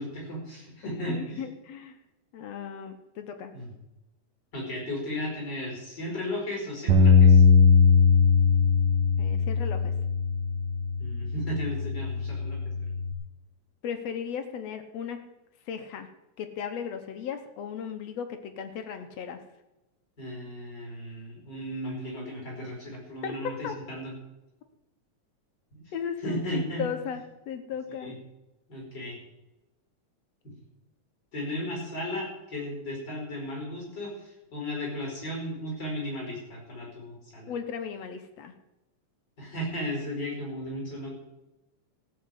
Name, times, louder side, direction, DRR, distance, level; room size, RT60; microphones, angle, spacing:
voice 1, 0.0-1.5 3.5-3.7 4.5-7.4 11.0-12.9 20.2-24.1 25.7-25.9 26.2-26.8 28.0-28.1 28.7-29.2 30.4-30.5 31.3-37.5 39.4-41.1, equal, 35° left, -1 dB, 5.6 m, -35 dB
voice 2, 0.8-2.0 2.3-3.5 9.2-9.9 13.8-15.2 15.7-16.1 16.4-19.4 23.2-23.7 25.9-28.1 37.5-38.5, left 7 dB, 65° left, 7 dB, 2.1 m, -36 dB
Bass guitar, 6.9-13.1, left 5 dB, 60° right, 2.1 m, -21 dB
15.5 x 6.6 x 8.1 m, 0.99 s
omnidirectional pair, 3.4 m